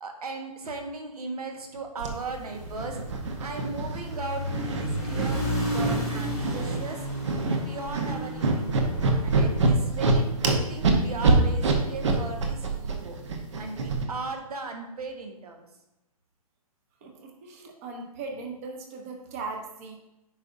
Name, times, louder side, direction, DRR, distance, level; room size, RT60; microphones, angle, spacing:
voice 1, 0.0-3.0 3.4-7.0 7.5-8.9 9.2-13.2 13.5-15.7, right 3 dB, 80° right, 3 dB, 1.5 m, -37 dB
sound 1, 2.0-2.1 2.7-4.2 4.4-5.3 5.7-6.0 6.4-6.8 7.0-7.6 7.9-14.1, right 3 dB, 50° right, 1.0 m, -25 dB
sound 2, 2.2-10.6, equal, ahead, 1.2 m, -33 dB
voice 2, 17.0-20.0, right 3 dB, 25° right, 3 dB, 0.9 m, -38 dB
8.9 x 5.5 x 2.7 m, 0.92 s
hypercardioid pair, 165°, 19 cm